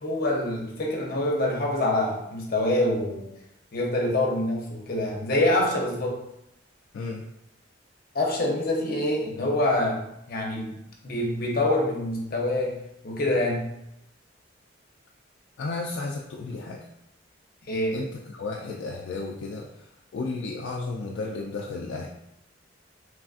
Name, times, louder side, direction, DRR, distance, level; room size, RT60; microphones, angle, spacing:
voice 1, 0.0-3.3 3.7-6.2 8.1-10.8 11.0-12.8 13.0-13.6 17.7-18.0, left 1 dB, 50° left, -1 dB, 0.7 m, -25 dB
voice 2, 6.9-7.2 15.6-16.8 17.9-19.8 20.1-22.1, left 3 dB, 70° left, -1 dB, 0.3 m, -33 dB
3.2 x 2.4 x 2.4 m, 0.83 s
head